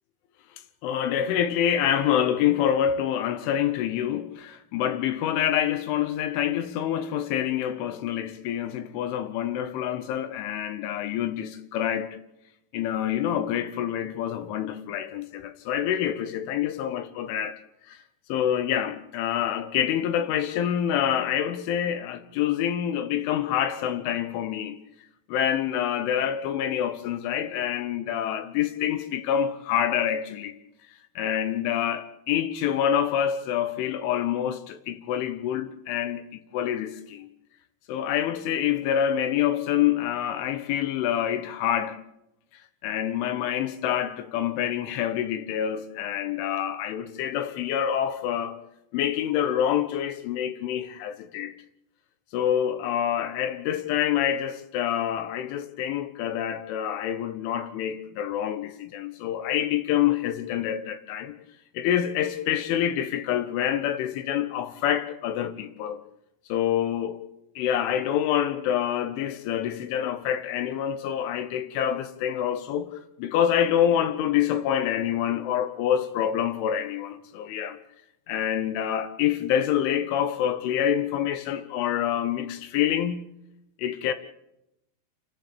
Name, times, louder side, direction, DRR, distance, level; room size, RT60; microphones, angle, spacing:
voice 1, 0.8-12.2 12.7-17.6 17.9-18.0 18.3-24.8 25.3-30.5 31.2-37.3 37.9-42.0 42.8-48.6 48.9-51.5 52.3-61.3 61.7-66.0 66.5-67.2 67.6-72.9 73.2-77.8 78.3-83.3 83.8-84.1, left 10 dB, 75° left, 3.3 m, -26 dB
29.0 x 13.5 x 8.5 m
omnidirectional pair, 5.9 m